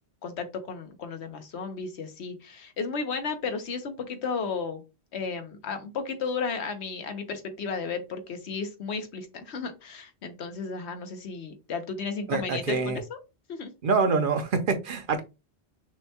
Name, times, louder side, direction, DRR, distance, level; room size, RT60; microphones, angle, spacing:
voice 1, 0.2-4.8 5.1-13.2 13.5-13.7, left 5 dB, 80° left, 1.1 m, -34 dB
voice 2, 12.3-13.0 13.8-15.2, right 4 dB, 55° right, 0.8 m, -25 dB
6.2 x 2.2 x 2.8 m
omnidirectional pair, 1.1 m